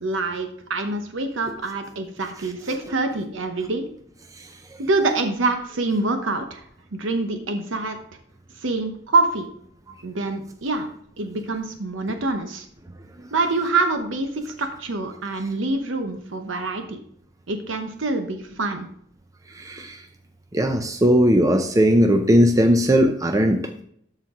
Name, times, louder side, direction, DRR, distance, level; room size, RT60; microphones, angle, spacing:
voice 1, 0.0-3.9 4.8-6.6 6.9-8.0 8.6-9.5 10.0-10.9 11.2-12.6 13.3-17.0 17.5-18.9, right 3 dB, 85° right, 6 dB, 0.9 m, -25 dB
voice 2, 19.5-20.0 20.5-23.6, equal, 20° right, 5 dB, 0.6 m, -18 dB
13.0 x 4.5 x 3.7 m, 0.67 s
head